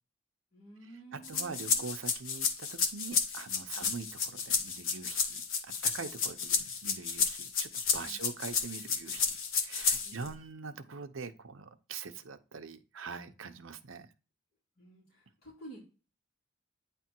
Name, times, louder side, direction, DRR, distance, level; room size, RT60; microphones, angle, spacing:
voice 1, 0.5-1.9 3.7-4.0 8.0-8.3 10.0-10.3 14.8-15.8, right 2 dB, 50° left, 3.7 m, -52 dB
voice 2, 1.1-9.3 9.6-14.1, right 4 dB, 75° right, 0.8 m, -43 dB
sound 1, 1.2-10.3, left 5 dB, 85° left, 1.2 m, -31 dB
9.3 x 3.5 x 4.5 m
head